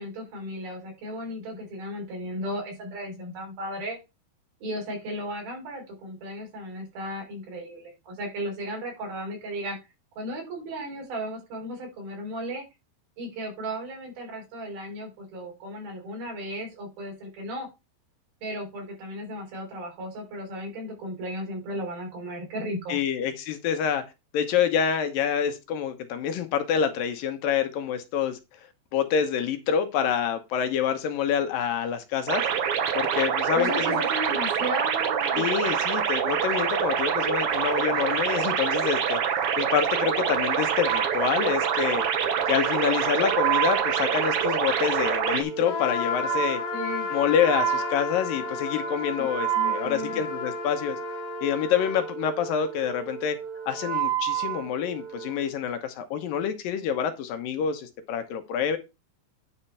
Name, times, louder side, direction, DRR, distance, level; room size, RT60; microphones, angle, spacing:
voice 1, 0.0-4.0 4.6-9.8 10.2-12.6 13.2-17.7 18.4-23.0 33.5-35.5 46.7-47.1 49.2-50.2, equal, 75° right, 5.8 m, -35 dB
voice 2, 22.9-24.0 24.3-28.4 28.9-32.4 32.9-34.0 35.4-39.2 39.6-42.0 42.5-46.6 47.1-51.0 51.4-53.4 53.7-58.8, left 8 dB, 75° left, 2.6 m, -27 dB
sound 1, 32.3-45.4, right 8 dB, 90° right, 1.2 m, -26 dB
Wind instrument woodwind instrument, 40.7-55.4, right 10 dB, 60° right, 4.0 m, -32 dB
Trumpet, 45.6-52.1, left 8 dB, 55° left, 2.1 m, -33 dB
9.9 x 4.3 x 5.6 m
omnidirectional pair, 4.3 m